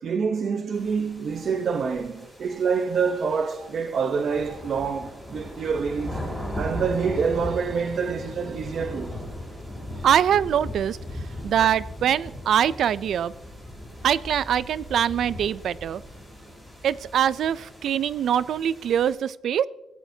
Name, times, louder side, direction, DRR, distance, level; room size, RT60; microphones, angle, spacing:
voice 1, 0.0-9.2 9.9-10.1 11.3-11.4, right 5 dB, 55° right, 0.8 m, -27 dB
sound 1, 0.7-19.1, left 1 dB, 10° right, 5.9 m, -38 dB
voice 2, 10.0-11.0 11.4-13.3 14.0-16.0 16.8-19.7, right 9 dB, 70° right, 0.4 m, -23 dB
24.0 x 16.0 x 2.7 m
wide cardioid pair, 150°, 0 cm